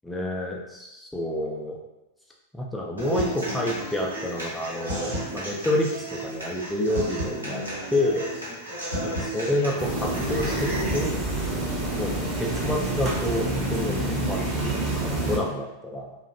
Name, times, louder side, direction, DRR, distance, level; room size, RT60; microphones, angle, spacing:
voice 1, 0.0-1.8 2.5-7.6 7.9-8.3 9.0-11.2 12.0-14.0 14.3-16.2, left 1 dB, 5° left, -1 dB, 0.3 m, -29 dB
Human voice / Acoustic guitar, 3.0-11.0, right 1 dB, 75° right, 0.8 m, -33 dB
sound 1, 9.8-15.4, right 1 dB, 20° right, 0.7 m, -27 dB
2.5 x 2.0 x 2.5 m, 0.96 s
figure-of-eight pair, 90°, 0 cm